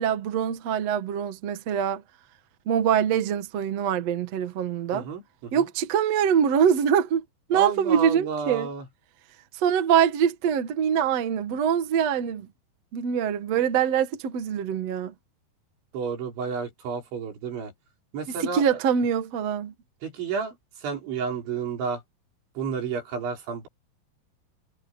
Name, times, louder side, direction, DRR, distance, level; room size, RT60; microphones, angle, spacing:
voice 1, 0.0-2.0 2.7-5.1 5.5-7.2 7.5-8.7 9.5-12.5 12.9-15.1 18.3-19.7, right 8 dB, 55° right, 1.9 m, -24 dB
voice 2, 4.9-5.7 7.5-8.9 15.9-17.7 18.1-18.7 20.0-20.6 20.8-22.0 22.6-23.7, right 6 dB, 80° right, 7.1 m, -31 dB
omnidirectional pair, 5.2 m